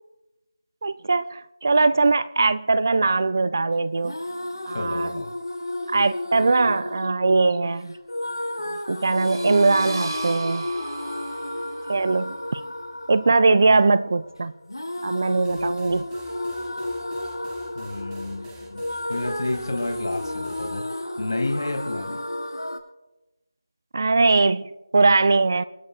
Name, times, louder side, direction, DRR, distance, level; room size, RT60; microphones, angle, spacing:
voice 1, 0.8-4.1 4.7-5.2 5.9-8.0 8.7-10.7 11.9-12.6 13.1-14.5 15.0-16.0 23.9-25.6, right 3 dB, 40° right, 0.4 m, -21 dB
sound 1, 4.0-22.8, left 1 dB, 80° left, 5.9 m, -32 dB
voice 2, 4.7-5.3 17.7-18.8 19.1-20.9 21.2-22.2, left 2 dB, 55° left, 2.4 m, -30 dB
sound 2, 9.0-14.4, right 2 dB, 75° right, 3.0 m, -38 dB
sound 3, 15.4-20.7, right 2 dB, 10° right, 0.9 m, -49 dB
29.0 x 11.5 x 2.4 m
figure-of-eight pair, 165°, 2 cm